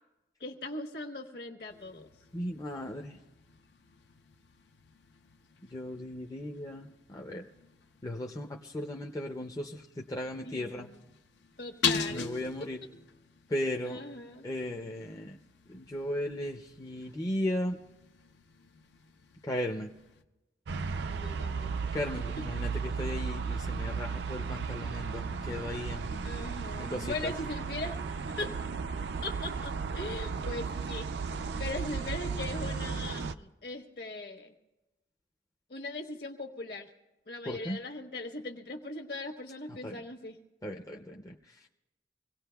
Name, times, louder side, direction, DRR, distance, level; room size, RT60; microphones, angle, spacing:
voice 1, 0.4-2.1 10.4-11.0 11.6-12.3 12.6-12.7 13.8-14.5 21.0-21.7 26.2-28.6 29.2-31.1 31.6-34.5 35.7-36.9 37.3-40.4, left 2 dB, 60° left, 3 dB, 1.3 m, -40 dB
sound 1, 1.7-20.2, left 6 dB, 85° left, 0.7 m, -42 dB
voice 2, 2.3-3.2 5.7-7.5 8.0-10.9 12.1-12.8 13.5-14.0 14.4-15.4 15.7-17.8 19.4-19.9 21.9-26.2 26.8-27.3 37.5-37.8 39.8-39.9 40.6-41.7, left 1 dB, 20° left, 1 dB, 0.5 m, -36 dB
sound 2, 20.7-33.4, right 5 dB, 70° right, 0.4 m, -35 dB
25.5 x 17.5 x 2.3 m, 1.0 s
head